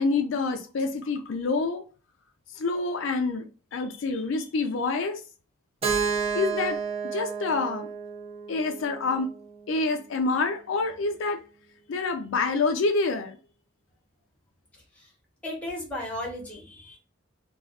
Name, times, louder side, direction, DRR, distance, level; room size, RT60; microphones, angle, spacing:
voice 1, 0.0-1.8 2.5-3.4 3.7-5.2 6.3-6.8 7.1-7.9 8.5-9.3 9.7-11.4 11.9-13.4, left 3 dB, 65° left, 0.4 m, -27 dB
Keyboard (musical), 5.8-9.7, right 6 dB, 30° right, 0.4 m, -31 dB
voice 2, 15.4-17.0, left 1 dB, 5° left, 0.8 m, -35 dB
2.4 x 2.3 x 3.5 m
head